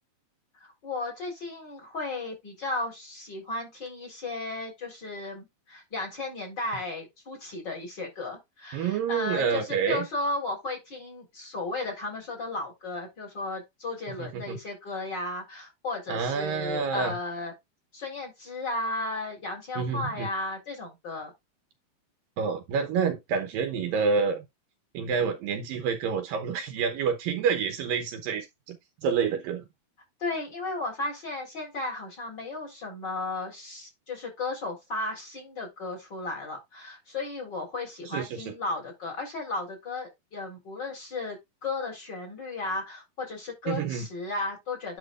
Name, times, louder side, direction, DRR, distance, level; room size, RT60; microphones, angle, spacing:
voice 1, 0.6-17.5 17.9-21.3 30.2-45.0, left 2 dB, 30° left, 4.1 m, -34 dB
voice 2, 8.7-10.1 14.2-14.6 16.1-17.2 19.8-20.3 22.4-24.4 24.9-28.8 29.0-29.6 38.1-38.5 43.7-44.1, right 6 dB, 75° right, 2.4 m, -28 dB
10.5 x 5.6 x 2.4 m
omnidirectional pair, 4.5 m